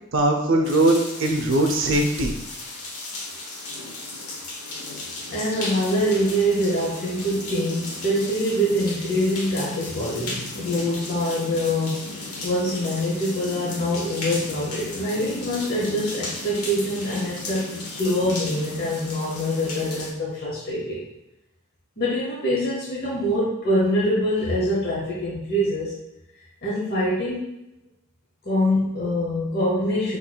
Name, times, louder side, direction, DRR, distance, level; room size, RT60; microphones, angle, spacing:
voice 1, 0.1-2.3, right 1 dB, 60° right, 3 dB, 0.6 m, -20 dB
sound 1, 0.6-20.1, left 2 dB, 85° left, 1.0 m, -35 dB
voice 2, 5.3-21.0 22.0-26.0 26.6-27.5 28.4-30.2, equal, 45° left, -6 dB, 0.9 m, -24 dB
6.0 x 3.1 x 2.3 m, 0.89 s
head